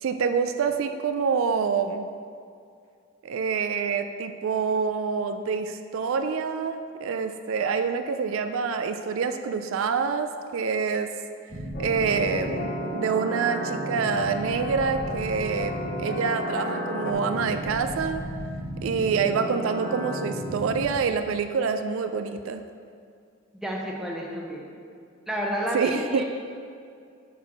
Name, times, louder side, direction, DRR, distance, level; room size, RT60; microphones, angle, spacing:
voice 1, 0.0-2.1 3.2-11.1 11.8-15.7 16.0-18.2 18.8-22.6 25.7-26.2, right 5 dB, 70° right, 8 dB, 0.4 m, -26 dB
sound 1, 11.5-20.9, equal, 30° right, 0.8 m, -34 dB
sound 2, 11.7-17.1, left 1 dB, 45° left, 0.5 m, -36 dB
voice 2, 23.6-24.8 25.3-26.2, equal, ahead, -2 dB, 0.7 m, -30 dB
6.0 x 4.5 x 6.1 m, 2.3 s
head